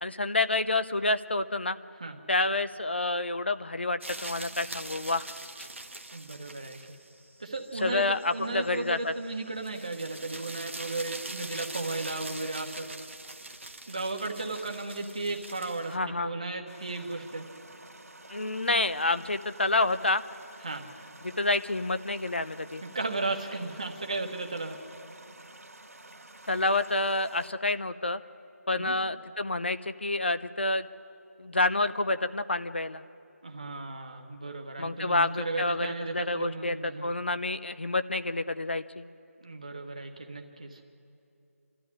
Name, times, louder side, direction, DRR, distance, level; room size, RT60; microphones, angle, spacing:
voice 1, 0.0-1.8 2.3-5.2 7.8-9.1 15.9-16.3 18.3-20.2 21.2-22.8 26.5-28.2 28.7-30.9 31.4-33.0 34.8-36.7 37.0-39.0, left 2 dB, 45° left, 12 dB, 0.7 m, -28 dB
sound 1, 4.0-16.0, right 2 dB, 50° right, 1.2 m, -43 dB
voice 2, 6.1-6.8 7.4-12.9 13.9-17.5 20.6-20.9 22.8-24.8 28.8-28.9 33.4-37.1 39.4-40.8, right 3 dB, 25° right, 3 dB, 1.3 m, -35 dB
sound 2, 16.7-27.5, right 2 dB, 70° right, 2.1 m, -50 dB
27.5 x 13.0 x 9.8 m, 2.8 s
figure-of-eight pair, 180°, 8 cm